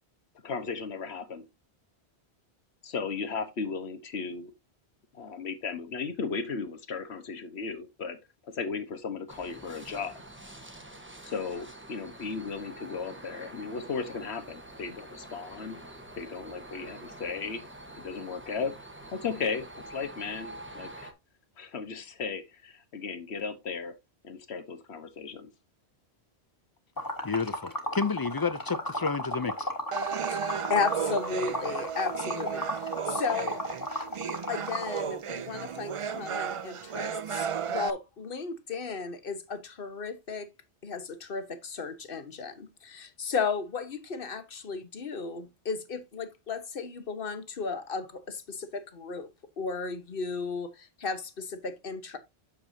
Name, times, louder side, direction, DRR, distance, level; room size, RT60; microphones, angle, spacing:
voice 1, 0.4-1.4 2.8-4.5 5.1-8.2 8.4-10.2 11.2-15.8 16.2-17.6 18.0-18.7 19.1-21.1 21.6-23.9 24.2-25.5, left 5 dB, 75° left, 1.4 m, -36 dB
sound 1, 9.3-21.1, right 1 dB, 10° right, 1.1 m, -46 dB
Liquid, 27.0-34.9, equal, 20° left, 1.6 m, -34 dB
voice 2, 27.2-29.7, left 5 dB, 35° left, 0.3 m, -30 dB
sound 2, 29.9-37.9, right 7 dB, 55° right, 0.3 m, -34 dB
voice 3, 30.3-33.6 34.5-40.5 40.8-49.3 49.6-52.2, left 5 dB, 55° left, 1.3 m, -34 dB
8.5 x 6.8 x 2.7 m
omnidirectional pair, 1.1 m